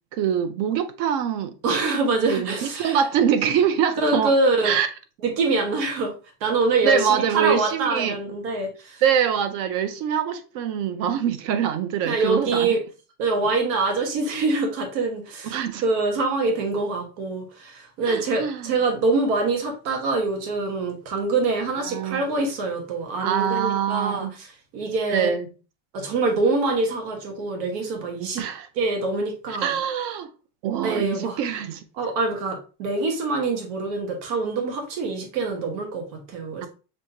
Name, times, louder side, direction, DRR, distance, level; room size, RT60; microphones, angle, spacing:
voice 1, 0.1-1.5 2.3-4.3 4.6-4.9 6.8-8.2 9.0-12.7 15.4-15.8 18.0-18.7 21.8-22.3 23.2-24.3 25.1-25.5 28.4-28.7 29.6-30.3 30.6-31.8 36.6-36.7, right 8 dB, 45° right, 0.5 m, -24 dB
voice 2, 1.6-3.0 4.0-4.7 5.2-6.1 6.4-9.0 12.0-12.8 13.2-25.3 25.9-28.4 28.7-29.7 30.8-31.4 32.0-36.7, right 3 dB, 90° right, 1.5 m, -25 dB
6.2 x 2.8 x 2.7 m
cardioid pair, 170°, 49 cm